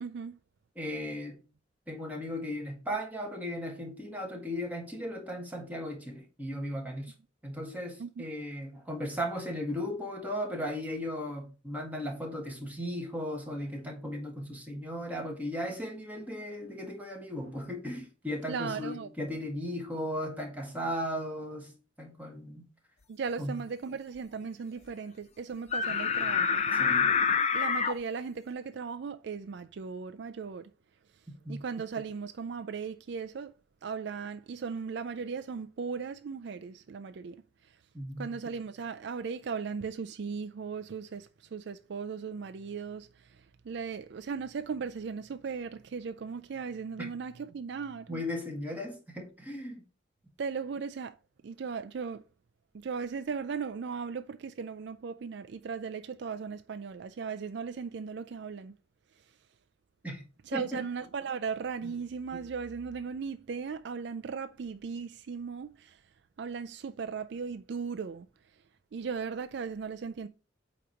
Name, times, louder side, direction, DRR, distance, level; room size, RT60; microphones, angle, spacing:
voice 1, 0.0-0.4 8.0-8.2 18.5-19.1 23.1-26.6 27.5-30.7 31.5-33.5 33.8-37.4 38.2-48.2 50.4-51.2 51.4-52.2 52.7-58.7 60.5-66.0 66.4-68.3 68.9-70.3, right 5 dB, 60° right, 0.4 m, -37 dB
voice 2, 0.8-1.4 1.9-7.1 7.4-21.7 22.0-22.6 23.4-23.5 26.8-27.1 31.4-31.6 37.9-38.3 47.0-47.1 48.1-49.8 60.0-60.2 60.5-60.8 61.8-61.9, equal, 10° right, 1.6 m, -36 dB
sound 1, 25.7-27.9, left 6 dB, 35° left, 0.6 m, -26 dB
8.3 x 3.0 x 5.1 m
head